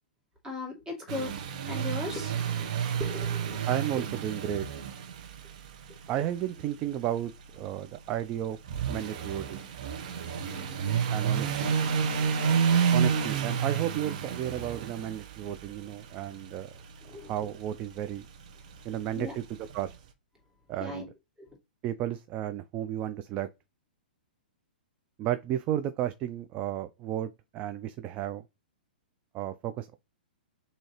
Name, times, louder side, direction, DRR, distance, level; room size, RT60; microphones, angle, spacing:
voice 1, 0.4-1.3 1.7-2.7 3.0-3.7 10.5-10.8 17.0-17.3 19.1-19.3 20.8-21.1 21.4-21.5, left 3 dB, 10° right, 2.5 m, -38 dB
sound 1, 1.1-19.9, right 7 dB, 45° right, 0.9 m, -31 dB
voice 2, 3.7-4.7 6.1-8.6 8.9-9.6 11.1-11.7 12.9-16.7 17.1-18.3 18.8-20.0 20.7-21.1 21.8-23.5 25.2-28.4 29.3-30.0, right 11 dB, 25° right, 0.4 m, -33 dB
6.2 x 2.8 x 3.0 m
figure-of-eight pair, 110°, 5 cm